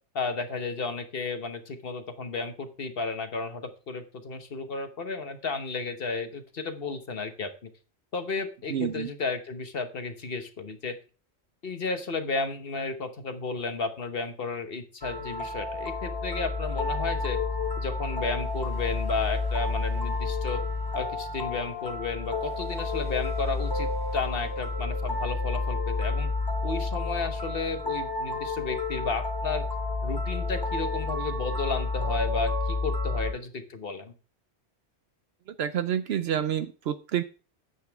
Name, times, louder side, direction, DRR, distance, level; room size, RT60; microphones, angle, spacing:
voice 1, 0.1-7.5 8.1-11.0 11.6-17.4 17.8-20.6 20.9-26.3 26.6-29.6 30.0-34.1, left 4 dB, 60° left, 8 dB, 1.2 m, -33 dB
voice 2, 8.7-9.1 35.6-37.2, right 9 dB, 70° right, 11 dB, 0.8 m, -28 dB
sound 1, 15.0-33.3, left 3 dB, 20° left, 1.1 m, -30 dB
9.6 x 8.0 x 3.4 m, 0.36 s
omnidirectional pair, 1.1 m